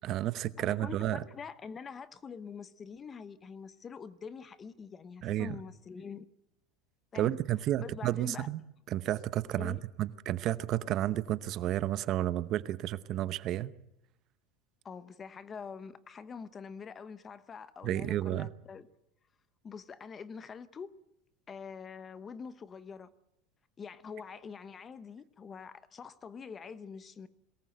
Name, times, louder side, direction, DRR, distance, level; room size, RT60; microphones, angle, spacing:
voice 1, 0.0-1.2 5.2-5.5 7.1-8.6 8.9-13.7 17.8-18.5, right 13 dB, 40° right, 0.9 m, -31 dB
voice 2, 0.6-6.3 7.1-7.4 7.8-8.5 9.6-9.8 14.8-18.9 19.6-20.9 21.5-23.1 23.8-27.3, left 6 dB, 20° left, 0.9 m, -45 dB
22.5 x 19.0 x 7.9 m
supercardioid pair, 145°, 0 cm